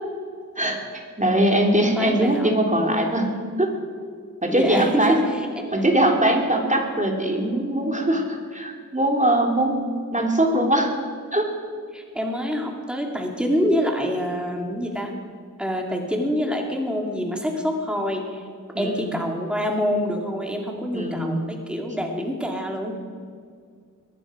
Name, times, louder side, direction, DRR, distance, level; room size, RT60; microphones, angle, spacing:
voice 1, 1.2-3.3 3.6-3.7 4.4-5.2 5.7-9.8 10.1-10.9 11.3-11.5 18.7-19.2 20.9-21.4, right 1 dB, 25° right, 1 dB, 2.9 m, -21 dB
voice 2, 1.9-2.5 4.5-5.7 11.9-15.1 15.6-18.5 18.8-22.9, equal, 5° right, 1 dB, 2.5 m, -26 dB
22.0 x 11.0 x 5.0 m, 2.1 s
wide cardioid pair, 50°, 33 cm